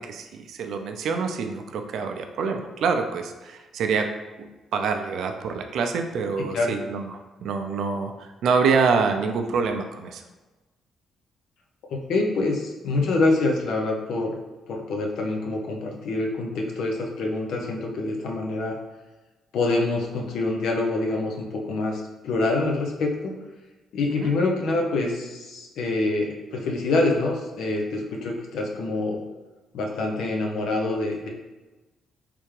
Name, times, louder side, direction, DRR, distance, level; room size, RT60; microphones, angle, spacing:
voice 1, 0.0-4.1 4.4-10.2 24.1-24.3, right 5 dB, 75° right, 5 dB, 0.4 m, -26 dB
voice 2, 11.9-14.3 14.7-18.8 19.5-23.4 23.9-29.2 29.7-31.3, left 2 dB, 75° left, 1 dB, 0.7 m, -26 dB
3.4 x 3.3 x 3.2 m, 1.2 s
cardioid pair, 90°, 0 cm